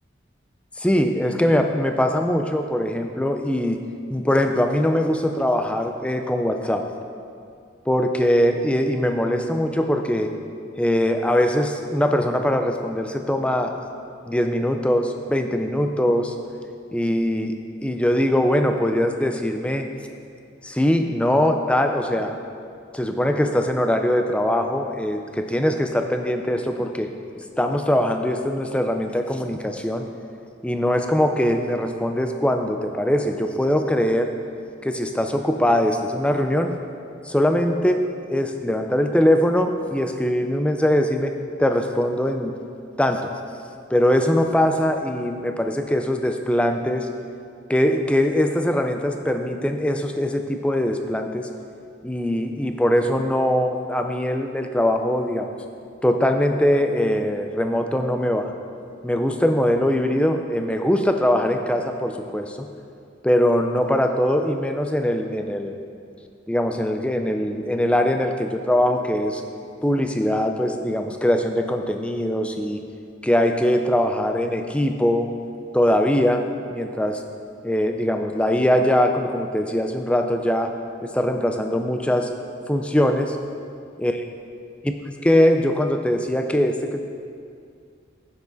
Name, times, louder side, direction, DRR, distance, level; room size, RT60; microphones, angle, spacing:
voice 1, 0.8-3.8 4.1-6.9 7.9-10.3 10.8-13.8 14.3-16.3 16.9-17.6 17.8-19.9 20.6-22.4 22.9-27.1 27.6-30.1 30.6-34.3 34.8-36.7 37.2-41.3 41.6-42.5 43.0-43.3 43.9-47.1 47.7-51.5 52.0-55.6 56.0-58.5 59.0-62.7 63.2-65.8 66.5-69.4 69.8-72.8 73.2-75.3 75.7-76.4 76.7-77.2 77.6-80.7 81.0-82.3 82.7-83.4 84.0-84.1 84.9-85.0 85.2-87.0, left 1 dB, 5° left, 5 dB, 0.4 m, -21 dB
10.0 x 7.1 x 4.0 m, 2.4 s
head